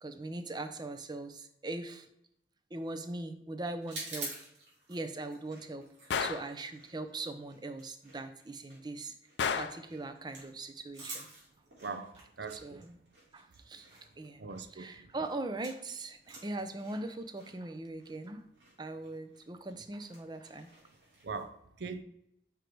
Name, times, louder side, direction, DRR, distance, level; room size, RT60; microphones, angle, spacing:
voice 1, 0.0-2.1 2.7-4.3 4.9-5.9 6.2-9.1 9.6-11.3 12.5-13.0 13.3-13.9 14.2-18.4 18.8-20.7, right 2 dB, 25° right, 0.5 m, -40 dB
sound 1, 3.8-21.4, right 2 dB, 85° right, 2.6 m, -50 dB
Gunshot gunfire, 6.1-6.5 9.4-9.9, left 6 dB, 75° left, 0.4 m, -32 dB
voice 2, 11.8-12.9 14.4-15.1 21.2-22.0, right 4 dB, 65° right, 0.6 m, -41 dB
5.2 x 4.7 x 4.6 m
head